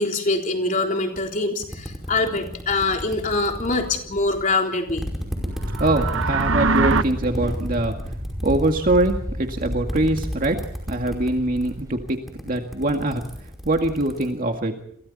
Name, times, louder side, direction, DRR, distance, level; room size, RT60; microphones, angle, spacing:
voice 1, 0.0-5.0, left 3 dB, 40° left, 2 dB, 3.7 m, -24 dB
sound 1, 1.2-1.3 1.6-4.5 4.9-11.3 11.6-11.8 12.1-14.3, equal, ahead, 5.2 m, -33 dB
sound 2, 5.5-12.0, equal, 15° right, 3.5 m, -31 dB
sound 3, 5.6-7.0, right 3 dB, 70° right, 1.0 m, -22 dB
voice 2, 5.8-8.0 8.4-10.6 10.9-12.2 12.4-13.2 13.6-14.7, right 1 dB, 40° right, 4 dB, 2.1 m, -23 dB
29.0 x 23.0 x 4.2 m, 0.64 s
head